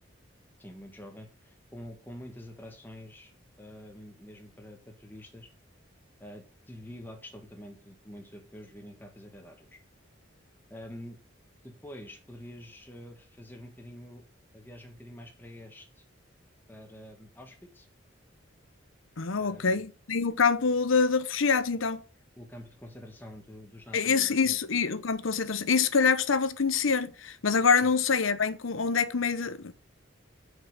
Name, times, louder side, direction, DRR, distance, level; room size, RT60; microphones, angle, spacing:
voice 1, 0.6-3.3 3.6-5.5 6.2-9.8 10.7-11.2 11.6-14.2 14.5-16.0 16.7-17.9 19.3-19.9 22.4-24.6 27.8-27.9, left 1 dB, 10° left, 1.5 m, -47 dB
voice 2, 19.2-22.0 23.9-29.7, left 5 dB, 90° left, 0.8 m, -25 dB
7.4 x 5.6 x 6.5 m
head